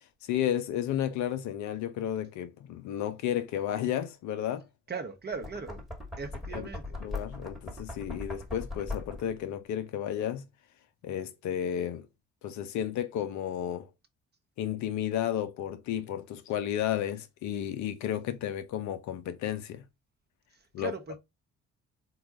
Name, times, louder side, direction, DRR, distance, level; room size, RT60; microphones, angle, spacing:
voice 1, 0.2-4.7 6.5-6.7 7.0-10.4 11.0-12.1 12.4-13.9 14.6-19.8 20.7-20.9, left 10 dB, 55° left, 0.6 m, -32 dB
voice 2, 4.9-5.8 6.2-6.8 20.5-21.2, right 4 dB, 30° right, 0.8 m, -38 dB
Knock, 5.3-9.4, left 2 dB, ahead, 1.2 m, -39 dB
3.9 x 2.3 x 3.8 m
figure-of-eight pair, 40°, 36 cm